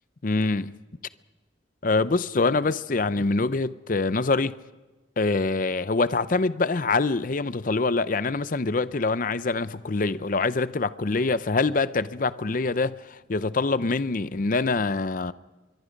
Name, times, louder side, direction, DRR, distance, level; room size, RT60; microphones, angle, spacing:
voice 1, 0.2-0.8 1.8-4.5 5.2-15.3, left 3 dB, 45° left, 0.6 m, -25 dB
25.5 x 22.5 x 5.2 m
head